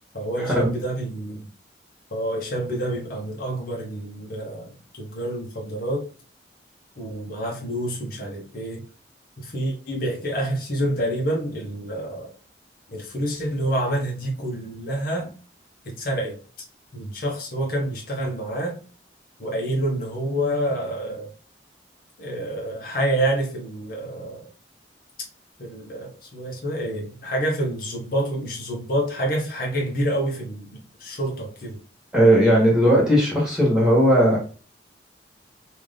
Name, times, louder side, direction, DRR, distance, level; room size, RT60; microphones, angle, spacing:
voice 1, 0.1-1.5 2.1-6.1 7.0-8.8 9.4-12.3 12.9-15.3 15.8-16.4 16.9-18.8 19.4-21.3 22.2-24.5 25.6-31.8, right 1 dB, 55° left, 0.9 m, -28 dB
voice 2, 32.1-34.4, equal, 5° right, 1.5 m, -17 dB
3.4 x 2.7 x 3.7 m
head